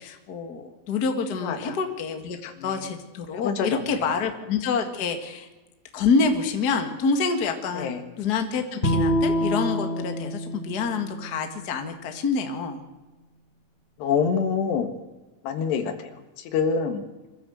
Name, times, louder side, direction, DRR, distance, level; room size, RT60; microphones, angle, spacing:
voice 1, 0.0-5.5 5.9-12.8, left 5 dB, 40° left, 5 dB, 1.4 m, -27 dB
Bowed string instrument, 8.8-12.1, equal, 15° left, 3.1 m, -27 dB
voice 2, 14.0-14.9 15.5-15.8 16.5-17.0, left 6 dB, 80° left, 7 dB, 3.8 m, -24 dB
24.5 x 14.5 x 7.9 m, 1.2 s
omnidirectional pair, 4.7 m